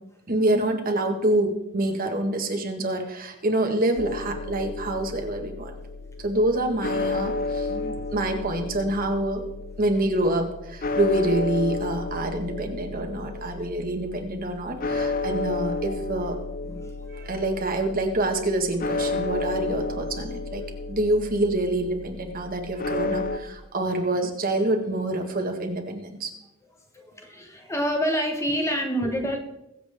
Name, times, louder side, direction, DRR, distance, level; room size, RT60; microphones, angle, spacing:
voice 1, 0.3-5.7 6.2-7.7 8.1-9.4 9.8-16.4 17.1-20.6 20.9-26.3 29.0-29.1, right 1 dB, 45° right, 4 dB, 1.7 m, -26 dB
sound 1, 4.0-23.4, left 3 dB, 45° left, 0.7 m, -32 dB
voice 2, 7.7-8.1 16.6-17.3 26.9-29.4, equal, 15° left, 3 dB, 1.5 m, -28 dB
22.5 x 7.8 x 3.6 m, 0.87 s
head